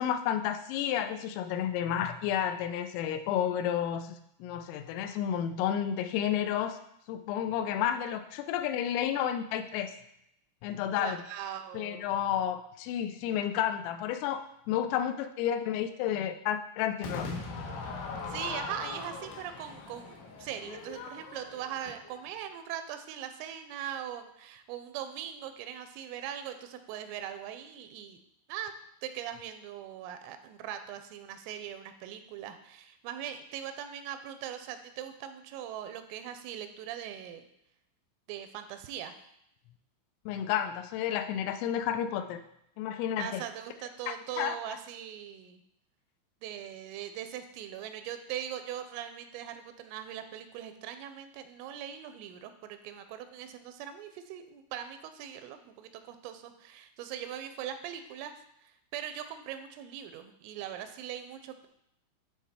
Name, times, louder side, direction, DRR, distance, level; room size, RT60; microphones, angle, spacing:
voice 1, 0.0-6.8 7.1-10.0 10.6-11.2 11.7-17.3 40.3-42.4 42.8-43.4 44.1-44.6, left 10 dB, 90° left, 9 dB, 3.3 m, -31 dB
voice 2, 10.9-12.1 18.0-28.2 28.5-28.7 29.0-37.5 38.3-39.1 43.2-45.6 46.4-58.4 58.6-61.7, right 10 dB, 90° right, 8 dB, 3.2 m, -41 dB
Crowd / Fireworks, 17.0-22.3, left 3 dB, 70° left, 3.3 m, -40 dB
11.5 x 3.9 x 4.3 m, 0.77 s
omnidirectional pair, 5.8 m